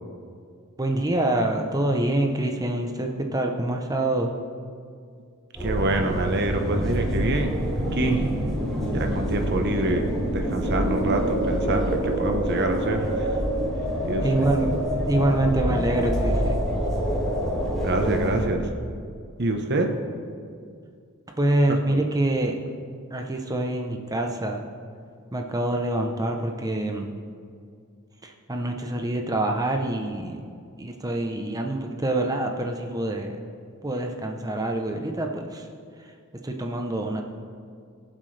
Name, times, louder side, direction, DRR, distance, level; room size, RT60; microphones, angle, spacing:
voice 1, 0.8-4.3 14.2-14.7 15.1-16.6 21.4-22.5 23.1-24.6 25.3-27.1 28.2-30.4 30.8-33.3 33.8-35.7 36.0-36.1 36.4-37.2, right 1 dB, 15° right, 3 dB, 0.8 m, -26 dB
sound 1, 5.5-18.4, equal, ahead, 2.8 m, -26 dB
voice 2, 5.6-8.3 8.9-13.4 14.0-14.2 17.8-18.7 19.4-19.9 21.9-22.0, right 2 dB, 50° right, 4 dB, 1.1 m, -26 dB
22.0 x 7.6 x 3.4 m, 2.3 s
head